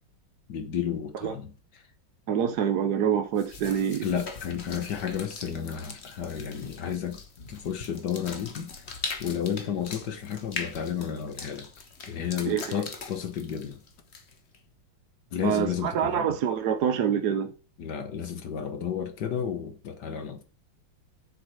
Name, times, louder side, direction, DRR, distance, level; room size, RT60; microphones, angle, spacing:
voice 1, 0.5-1.5 4.0-7.2 7.5-8.8 9.2-11.7 12.1-13.8 15.3-16.3 17.8-20.4, left 8 dB, 60° left, 1.6 m, -32 dB
voice 2, 2.3-4.0 12.5-12.6 15.4-17.5, right 8 dB, 60° right, 1.2 m, -26 dB
sound 1, 3.4-14.6, left 4 dB, 40° left, 1.1 m, -41 dB
7.4 x 4.9 x 6.2 m
omnidirectional pair, 2.2 m